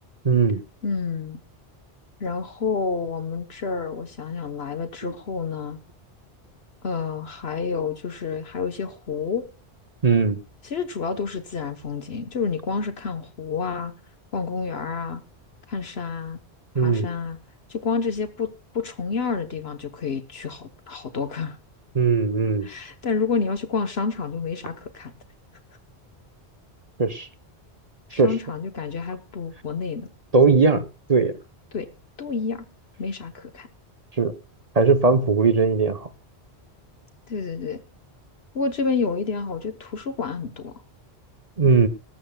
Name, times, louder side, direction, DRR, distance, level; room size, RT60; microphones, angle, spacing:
voice 1, 0.2-0.6 5.0-5.1 10.0-10.4 16.7-17.1 21.9-22.7 27.0-27.3 28.1-28.3 30.3-31.3 34.2-34.3 34.7-36.1 41.6-41.9, right 4 dB, 40° right, 1.0 m, -19 dB
voice 2, 0.8-1.4 2.2-5.8 6.8-9.4 10.6-13.9 14.3-15.2 15.7-16.4 16.8-17.4 17.7-21.6 22.6-25.1 28.1-30.1 31.7-31.9 32.2-32.7 33.0-33.7 37.3-37.8 38.5-40.7, left 5 dB, 70° left, 1.3 m, -29 dB
19.0 x 14.0 x 2.3 m
omnidirectional pair, 1.1 m